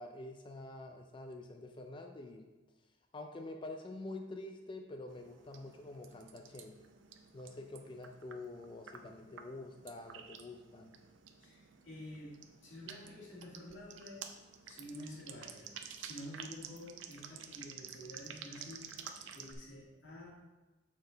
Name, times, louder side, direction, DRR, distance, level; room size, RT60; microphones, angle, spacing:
voice 1, 0.0-2.5 3.1-6.8 7.3-11.0, left 2 dB, 25° left, 4 dB, 0.4 m, -47 dB
sound 1, 5.1-19.5, right 7 dB, 80° right, 0.5 m, -51 dB
voice 2, 11.4-12.4 12.6-14.3 14.6-18.9 19.3-20.3, left 1 dB, 90° left, -4 dB, 1.9 m, -49 dB
6.9 x 4.3 x 3.8 m, 1.2 s
head